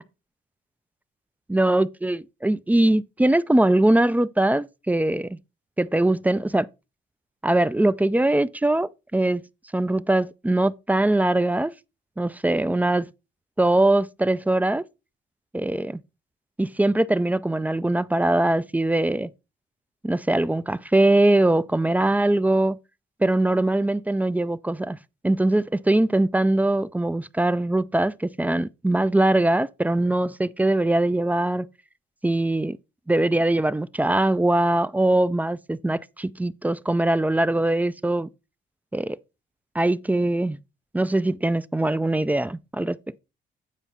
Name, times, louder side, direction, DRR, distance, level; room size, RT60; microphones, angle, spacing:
voice 1, 1.5-5.4 5.8-6.7 7.4-9.4 9.7-11.7 12.2-13.1 13.6-14.8 15.5-16.0 16.6-19.3 20.0-22.8 23.2-25.0 25.2-31.7 32.2-32.8 33.1-38.3 38.9-39.2 39.7-40.6 40.9-43.0, right 1 dB, 10° right, 0.3 m, -22 dB
9.1 x 4.8 x 4.1 m
cardioid pair, 90°, 20 cm